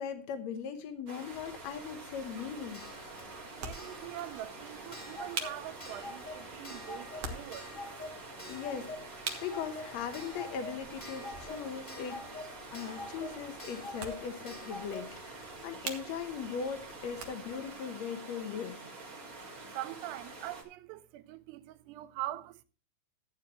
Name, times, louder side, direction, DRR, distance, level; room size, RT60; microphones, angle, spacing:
voice 1, 0.0-2.9 8.5-12.2 12.7-18.8, left 7 dB, 80° left, 1.5 m, -39 dB
sound 1, 1.1-20.6, right 3 dB, 45° right, 1.1 m, -47 dB
sound 2, 1.3-17.7, right 4 dB, 60° right, 1.6 m, -47 dB
Clock, 2.3-16.9 18.1-18.2 18.4-18.5, left 1 dB, 20° left, 1.3 m, -47 dB
voice 2, 3.6-7.8 19.7-22.6, right 15 dB, 85° right, 2.8 m, -43 dB
14.0 x 9.1 x 3.0 m
omnidirectional pair, 4.7 m